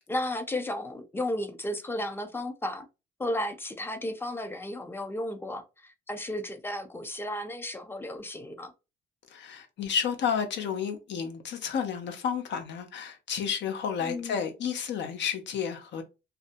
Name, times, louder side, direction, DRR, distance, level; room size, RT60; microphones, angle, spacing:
voice 1, 0.1-2.9 3.2-8.7 14.0-14.4, left 1 dB, 10° left, 0.5 m, -34 dB
voice 2, 9.3-16.0, left 7 dB, 65° left, 0.6 m, -31 dB
2.5 x 2.1 x 2.5 m
cardioid pair, 90°, 20 cm